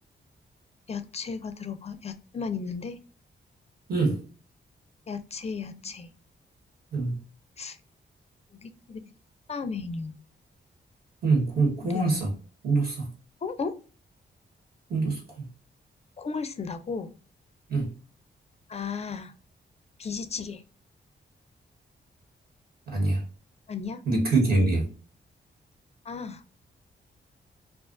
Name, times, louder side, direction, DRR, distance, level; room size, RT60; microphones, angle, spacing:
voice 1, 0.9-3.0 5.1-6.1 7.6-7.8 8.6-9.0 9.5-10.2 11.9-12.0 13.4-13.7 16.2-17.1 18.7-19.3 20.0-20.6 23.7-24.0 26.1-26.4, left 5 dB, 35° left, 0.4 m, -34 dB
voice 2, 3.9-4.2 6.9-7.2 11.2-12.3 12.6-13.1 14.9-15.5 17.7-18.0 22.9-23.2 24.0-24.9, right 3 dB, 60° right, 1.2 m, -25 dB
2.4 x 2.3 x 2.4 m
cardioid pair, 100°, 19 cm